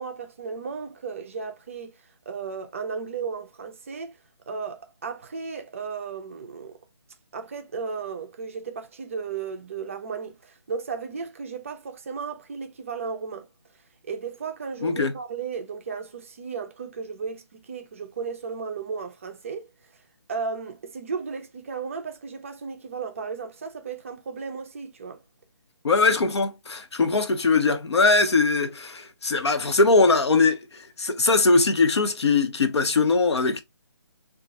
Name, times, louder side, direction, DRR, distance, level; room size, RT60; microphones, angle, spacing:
voice 1, 0.0-1.9 2.3-4.2 4.5-6.8 7.3-13.5 14.0-19.7 20.3-25.2, right 5 dB, 30° right, 0.4 m, -34 dB
voice 2, 14.8-15.1 25.8-33.6, left 3 dB, 65° left, 0.7 m, -21 dB
2.4 x 2.2 x 3.9 m
figure-of-eight pair, 150°, 15 cm